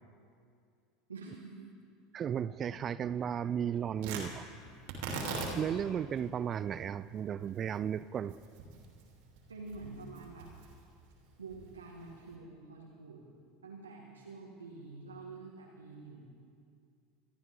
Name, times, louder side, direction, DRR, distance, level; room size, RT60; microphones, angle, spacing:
voice 1, 1.1-1.7 4.0-4.3 9.5-10.5 11.4-13.2 13.6-16.3, right 3 dB, 80° right, 1.8 m, -47 dB
voice 2, 2.1-4.4 5.6-8.4, right 8 dB, 35° right, 0.4 m, -34 dB
Tearing, 4.0-12.3, right 3 dB, 60° right, 3.1 m, -43 dB
26.5 x 13.0 x 3.7 m
figure-of-eight pair, 75°, 0 cm